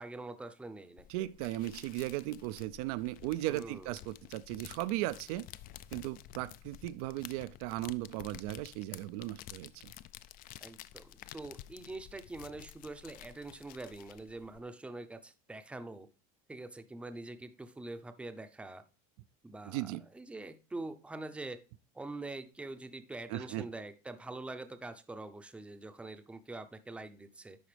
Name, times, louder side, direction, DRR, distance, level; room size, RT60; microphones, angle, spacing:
voice 1, 0.0-1.1 3.5-3.9 10.6-16.1 16.5-18.8 19.4-19.9 20.1-21.6 21.9-27.6, right 2 dB, 5° right, 0.6 m, -44 dB
sound 1, 1.0-14.6, left 13 dB, 45° left, 0.4 m, -52 dB
voice 2, 1.1-5.5 5.9-9.9 19.7-20.0 23.3-23.7, right 16 dB, 75° right, 0.4 m, -37 dB
11.0 x 4.0 x 3.3 m
supercardioid pair, 125°, 20 cm